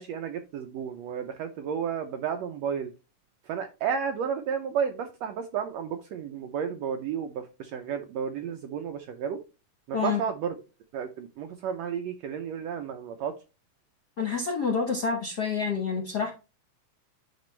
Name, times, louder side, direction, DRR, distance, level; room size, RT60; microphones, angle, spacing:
voice 1, 0.0-2.9 3.4-9.4 9.9-10.5 10.9-13.3, right 7 dB, 80° right, 6 dB, 1.5 m, -32 dB
voice 2, 14.2-16.3, left 5 dB, 60° left, 3 dB, 1.0 m, -28 dB
9.2 x 5.2 x 3.2 m, 0.30 s
omnidirectional pair, 3.7 m